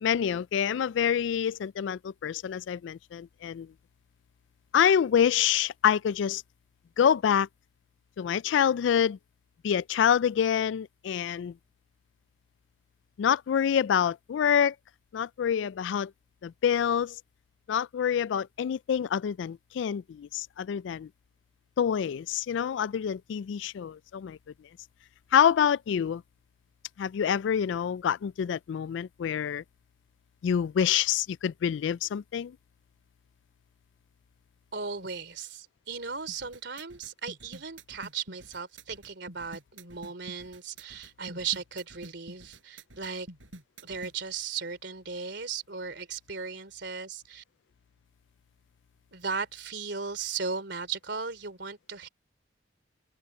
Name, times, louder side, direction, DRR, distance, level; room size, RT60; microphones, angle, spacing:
voice 1, 0.0-3.7 4.7-6.4 7.0-7.5 8.2-9.2 9.6-11.5 13.2-14.7 15.1-16.1 16.4-17.2 17.7-21.1 21.8-24.4 25.3-26.2 27.0-29.6 30.4-32.6, left 8 dB, 70° left, 0.3 m, -26 dB
voice 2, 34.7-43.3 43.8-47.4 49.1-52.1, right 5 dB, 60° right, 3.3 m, -36 dB
sound 1, 36.3-44.1, right 1 dB, 85° right, 6.8 m, -48 dB
open air
head